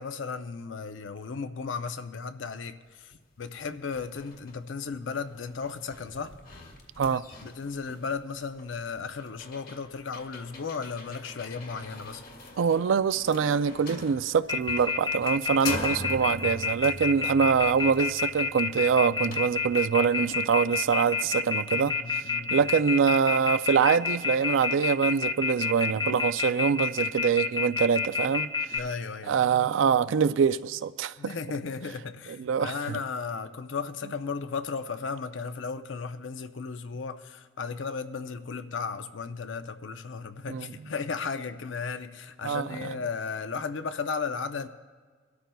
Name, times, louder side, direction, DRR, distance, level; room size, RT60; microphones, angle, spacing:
voice 1, 0.0-6.3 7.1-12.2 15.9-16.1 21.7-22.7 28.7-29.5 31.2-44.7, left 5 dB, 75° left, 0.6 m, -35 dB
sound 1, 3.1-3.2 3.6-21.5, left 2 dB, 50° left, 1.6 m, -43 dB
voice 2, 12.6-21.9 22.5-28.5 29.3-31.3 32.4-33.0 40.5-40.7 42.4-42.9, right 6 dB, 85° right, 0.4 m, -24 dB
Telephone, 14.5-28.8, left 6 dB, 20° left, 0.7 m, -28 dB
23.5 x 13.0 x 2.3 m
head